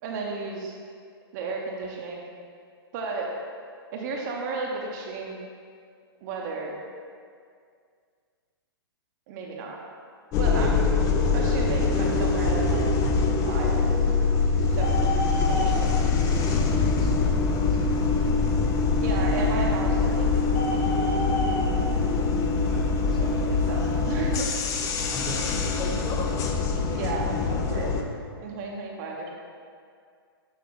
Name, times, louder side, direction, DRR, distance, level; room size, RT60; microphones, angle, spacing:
voice 1, 0.0-0.8 1.3-2.3 2.9-3.3 3.9-5.4 6.2-6.7 9.3-9.8 10.4-10.8 11.3-12.8 13.4-13.8 14.7-15.0 15.5-15.9 19.0-20.7 23.1-24.5 24.9-25.0 26.9-27.9 28.4-29.4, right 3 dB, 45° right, -1 dB, 0.8 m, -33 dB
sound 1, 10.3-28.0, left 4 dB, 25° left, 0.5 m, -24 dB
Bird, 14.6-25.8, left 2 dB, 45° left, 1.0 m, -36 dB
voice 2, 15.0-19.0 22.6-23.5 25.1-26.6 28.3-28.4, right 1 dB, ahead, -6 dB, 1.0 m, -41 dB
7.8 x 3.3 x 3.7 m, 2.2 s
hypercardioid pair, 125°, 13 cm